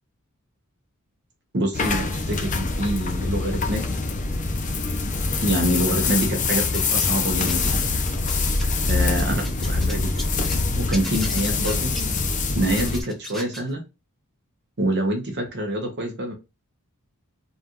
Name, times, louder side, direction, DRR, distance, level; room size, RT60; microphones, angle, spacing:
voice 1, 1.5-4.0 5.4-7.9 8.9-10.3 10.8-11.9 12.5-13.8 14.8-16.3, right 1 dB, 55° right, 3 dB, 0.9 m, -26 dB
sound 1, 1.7-13.0, left 3 dB, 35° left, 0.6 m, -24 dB
sound 2, 6.7-7.9 8.2-10.6 10.9-13.7, left 1 dB, ahead, 0.7 m, -38 dB
5.3 x 2.5 x 3.0 m, 0.27 s
head